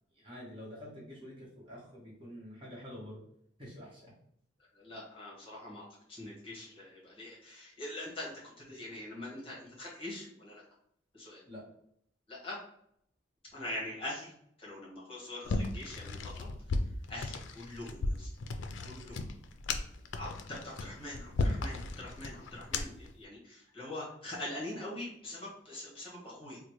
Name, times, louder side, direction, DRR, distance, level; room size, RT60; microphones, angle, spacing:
voice 1, 0.2-3.2 3.6-4.1 11.5-11.7, equal, 25° right, -5 dB, 1.1 m, -47 dB
voice 2, 4.7-10.6 11.1-11.4 12.3-12.6 13.5-14.3 14.6-16.5 17.1-18.3 18.8-19.2 20.1-26.6, left 1 dB, 30° left, -5 dB, 1.4 m, -43 dB
sound 1, 15.5-23.1, left 3 dB, 70° left, 0.4 m, -35 dB
3.9 x 2.2 x 3.0 m, 0.70 s
head